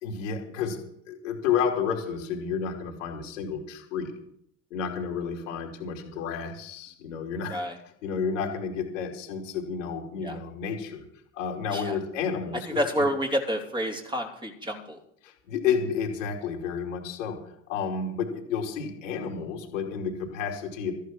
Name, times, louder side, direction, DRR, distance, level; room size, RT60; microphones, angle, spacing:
voice 1, 0.0-0.8 1.1-4.2 4.7-7.6 8.0-11.0 11.3-13.0 15.2-17.4 17.7-20.9, left 6 dB, 75° left, 0 dB, 3.3 m, -31 dB
voice 2, 12.7-15.0, equal, 10° right, 2 dB, 3.2 m, -29 dB
14.0 x 10.5 x 6.1 m, 0.71 s
hypercardioid pair, 70°, 38 cm